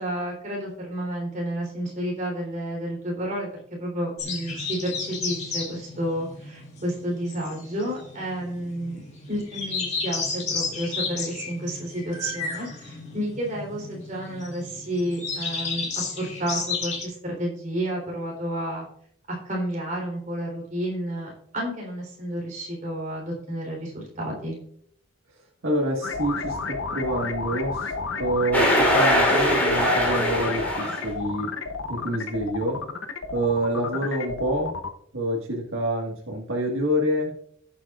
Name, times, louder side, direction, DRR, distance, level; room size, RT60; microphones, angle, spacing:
voice 1, 0.0-18.9 19.3-24.6, right 1 dB, 40° right, -2 dB, 3.5 m, -31 dB
sound 1, 4.2-17.0, left 4 dB, 35° left, 2.3 m, -33 dB
voice 2, 25.6-27.9 28.2-31.5 31.9-32.8 33.3-34.7 35.1-37.3, right 1 dB, 80° right, -1 dB, 1.7 m, -27 dB
sound 2, 26.0-34.9, left 4 dB, 70° left, 0.8 m, -31 dB
sound 3, 28.5-31.1, equal, 10° left, 2.7 m, -21 dB
16.0 x 7.9 x 2.5 m, 0.68 s
head